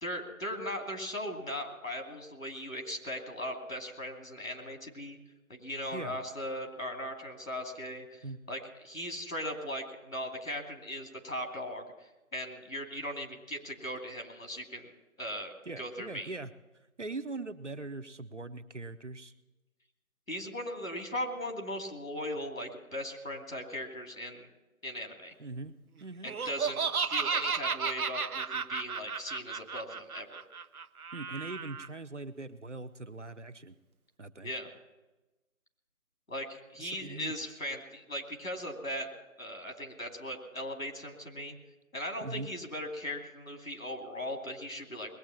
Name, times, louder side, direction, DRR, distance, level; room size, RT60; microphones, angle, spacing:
voice 1, 0.0-5.2 5.5-12.1 12.3-16.3 20.3-24.5 24.8-25.3 26.2-30.4 34.4-34.7 36.3-39.1 39.4-41.6 41.9-45.2, equal, 65° left, 2 dB, 2.8 m, -38 dB
voice 2, 15.7-16.5 17.0-19.3 25.4-25.7 26.0-26.3 31.1-33.7 34.2-34.5 36.8-37.3 42.2-42.5, right 3 dB, 55° right, 9 dB, 0.8 m, -41 dB
Laughter, 26.3-31.9, right 5 dB, 90° right, 0.7 m, -33 dB
20.0 x 8.7 x 7.3 m, 1.1 s
figure-of-eight pair, 170°, 42 cm